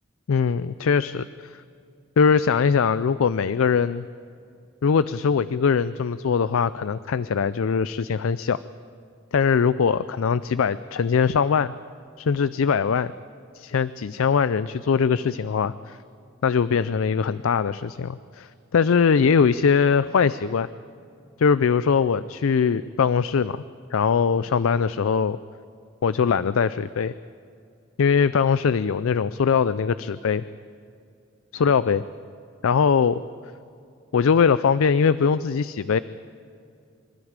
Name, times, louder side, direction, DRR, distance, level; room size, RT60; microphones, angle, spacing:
voice 1, 0.3-1.6 2.2-4.1 4.8-8.6 9.3-11.7 12.2-13.1 13.5-16.0 16.4-20.7 21.4-23.6 23.9-25.4 26.0-27.1 28.0-30.5 31.5-32.0 32.6-33.2 34.1-36.0, left 6 dB, 80° left, 15 dB, 0.4 m, -21 dB
25.5 x 13.0 x 8.8 m, 2.4 s
head